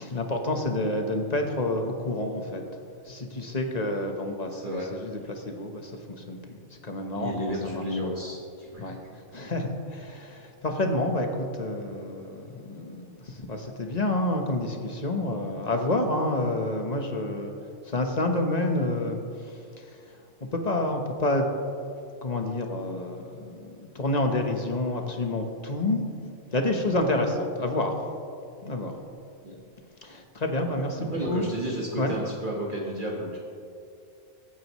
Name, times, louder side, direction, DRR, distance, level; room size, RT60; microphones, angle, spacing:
voice 1, 0.0-7.3 7.6-8.1 8.8-17.5 17.8-20.2 20.5-21.5 22.2-26.0 26.5-28.1 28.6-29.0 30.0-31.5 31.9-32.2, left 1 dB, 35° left, 3 dB, 1.2 m, -29 dB
voice 2, 4.5-4.9 7.1-9.1 29.4-29.6 31.0-33.4, equal, 45° right, -3 dB, 1.6 m, -32 dB
22.5 x 9.0 x 3.1 m, 2.5 s
omnidirectional pair, 1.2 m